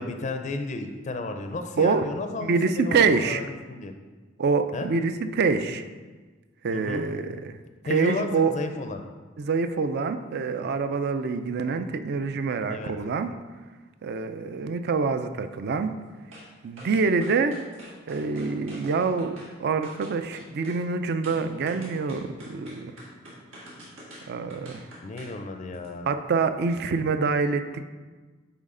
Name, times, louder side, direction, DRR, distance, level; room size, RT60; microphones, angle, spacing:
voice 1, 0.0-3.9 4.7-4.9 6.7-7.0 7.9-9.0 12.7-12.9 25.0-26.1, left 2 dB, 35° left, 6 dB, 0.4 m, -33 dB
voice 2, 2.4-3.4 4.4-5.8 6.6-7.6 7.9-8.5 9.4-13.3 14.0-15.9 16.6-17.6 18.1-22.9 24.3-24.8 26.1-27.8, right 4 dB, 55° right, 9 dB, 0.4 m, -26 dB
sound 1, 16.3-16.5 16.8-19.5 19.8-20.8 21.2-25.4 25.7-25.9, equal, 85° right, 2.0 m, -46 dB
9.5 x 4.0 x 3.8 m, 1.3 s
head